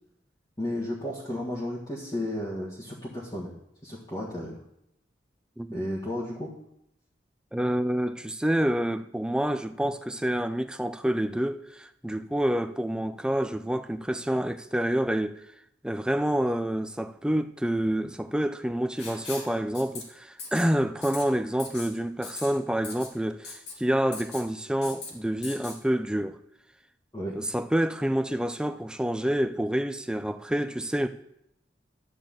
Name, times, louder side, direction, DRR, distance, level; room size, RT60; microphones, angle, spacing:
voice 1, 0.6-3.5 3.8-4.6 5.7-6.5 27.1-27.3, left 1 dB, 20° left, 1.7 m, -33 dB
voice 2, 7.5-15.4 15.8-26.4 27.3-31.1, right 1 dB, 5° right, 0.4 m, -28 dB
Writing, 19.0-19.5 19.7-20.0 20.4-20.7 21.0-21.2 21.6-21.9 22.2-22.5 22.8-23.1 23.4-23.7 24.1-24.4 24.8-25.1 25.4-25.8, left 4 dB, 60° left, 2.3 m, -39 dB
12.0 x 4.7 x 7.4 m
head